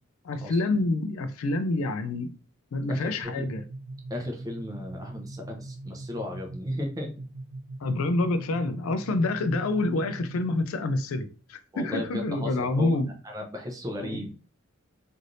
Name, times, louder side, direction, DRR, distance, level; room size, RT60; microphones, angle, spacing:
voice 1, 0.2-2.3 2.7-3.6 7.8-13.1 14.0-14.2, left 2 dB, 70° left, 0.4 m, -27 dB
voice 2, 2.9-3.5 4.1-7.1 11.7-13.0 13.2-14.3, left 1 dB, 15° right, 0.6 m, -35 dB
sound 1, 3.2-10.8, right 2 dB, 65° right, 0.4 m, -41 dB
3.2 x 2.5 x 2.6 m
head